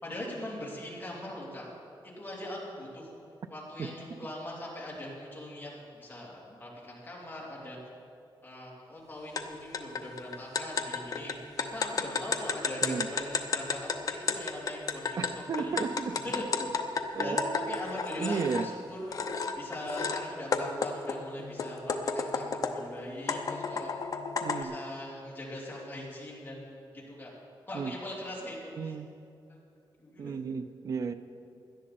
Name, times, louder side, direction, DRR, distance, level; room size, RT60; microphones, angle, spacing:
voice 1, 0.0-1.7 2.0-3.1 3.5-7.8 8.4-15.7 16.2-16.4 17.1-23.9 24.5-27.3 27.7-29.0 29.5-29.6 30.0-30.4, left 1 dB, 20° left, -5 dB, 3.0 m, -41 dB
voice 2, 3.8-4.2 12.8-13.1 15.2-16.4 17.1-17.8 18.2-18.7 24.4-24.8 27.7-27.9 28.8-29.1 30.2-31.1, right 5 dB, 40° right, 10 dB, 0.4 m, -34 dB
sound 1, 9.4-9.5 9.7-18.7 19.1-20.2 20.5-22.9 23.3-24.6, left 5 dB, 45° left, 0.7 m, -32 dB
17.5 x 11.5 x 4.2 m, 2.5 s
wide cardioid pair, 175°, 9 cm